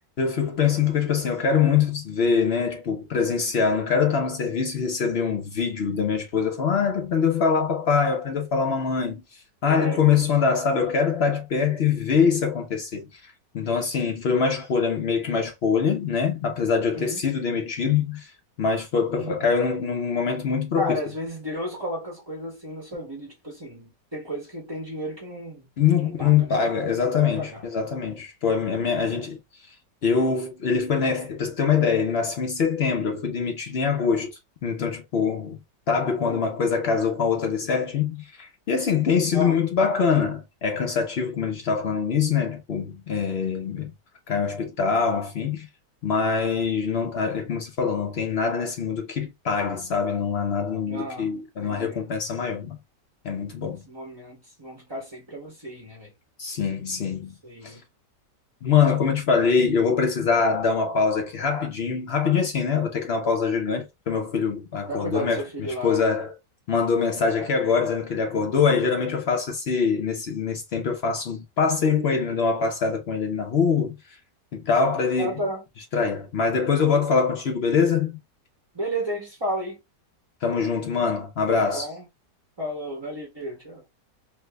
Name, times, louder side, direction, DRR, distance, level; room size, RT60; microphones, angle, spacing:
voice 1, 0.2-9.2 9.6-18.3 18.6-21.0 25.8-29.4 30.0-34.3 34.6-35.6 35.9-43.9 44.3-45.7 46.0-52.8 53.2-53.8 56.4-57.4 57.6-57.8 58.6-66.4 66.7-73.9 74.5-75.4 75.9-78.2 80.4-81.9, left 6 dB, 65° left, 0.6 m, -24 dB
voice 2, 9.6-10.2 16.9-17.2 19.1-19.5 20.8-25.7 26.0-26.6 27.0-27.6 36.2-36.4 39.3-39.6 50.9-52.1 53.9-56.1 57.4-57.8 64.9-66.2 75.2-75.6 78.7-79.8 81.6-82.0 82.6-83.8, equal, 25° right, 0.6 m, -33 dB
3.3 x 2.0 x 3.3 m
omnidirectional pair, 1.8 m